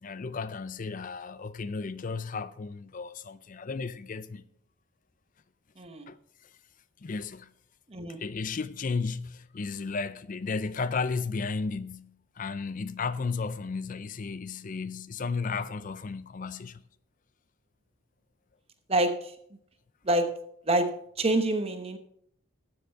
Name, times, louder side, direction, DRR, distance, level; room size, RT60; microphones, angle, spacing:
voice 1, 0.0-4.4 6.1-6.2 7.0-7.5 8.1-16.8, left 4 dB, 40° left, 0.5 m, -34 dB
voice 2, 5.8-6.1 7.9-8.2 18.9-19.4 20.0-20.3 20.6-20.9 21.2-22.0, right 1 dB, 30° right, 1.0 m, -26 dB
13.0 x 7.7 x 4.5 m
head